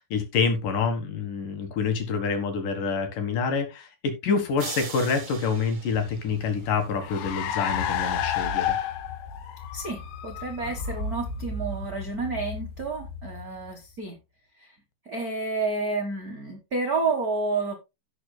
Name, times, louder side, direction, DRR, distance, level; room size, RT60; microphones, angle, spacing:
voice 1, 0.1-8.8, left 5 dB, 65° left, 6 dB, 2.9 m, -27 dB
sound 1, 4.6-6.9, right 6 dB, 55° right, 2.8 m, -40 dB
Car, 5.9-13.7, left 7 dB, 90° left, 3.0 m, -32 dB
voice 2, 9.7-14.2 14.6-14.8 15.0-17.7, right 3 dB, 80° right, 1 dB, 0.8 m, -30 dB
17.0 x 6.2 x 2.2 m, 0.25 s
omnidirectional pair, 4.3 m